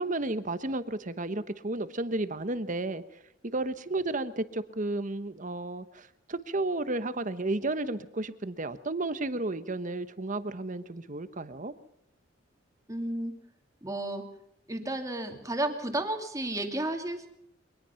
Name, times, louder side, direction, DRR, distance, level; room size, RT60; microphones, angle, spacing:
voice 1, 0.0-3.0 3.5-11.7, right 2 dB, 40° right, 12 dB, 1.1 m, -32 dB
voice 2, 12.9-13.3 13.8-14.2 14.7-17.3, right 1 dB, 15° right, 4 dB, 2.6 m, -32 dB
24.0 x 19.0 x 5.8 m, 0.77 s
head